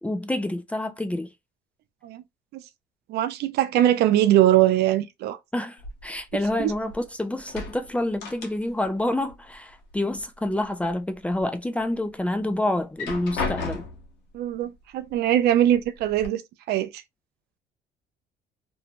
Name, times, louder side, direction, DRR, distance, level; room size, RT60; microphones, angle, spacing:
voice 1, 0.0-1.3 5.5-13.9, left 1 dB, 10° left, 0.3 m, -28 dB
voice 2, 3.1-5.4 6.6-6.7 14.3-16.4 16.7-17.0, right 12 dB, 70° right, 0.4 m, -21 dB
sound 1, 5.8-7.1 7.4-9.0 9.2-10.2 10.6-11.4 11.9-12.0 12.8-14.2 15.1-15.2 15.6-16.3, left 4 dB, 80° left, 0.8 m, -35 dB
2.6 x 2.1 x 2.7 m
cardioid pair, 110°, 17 cm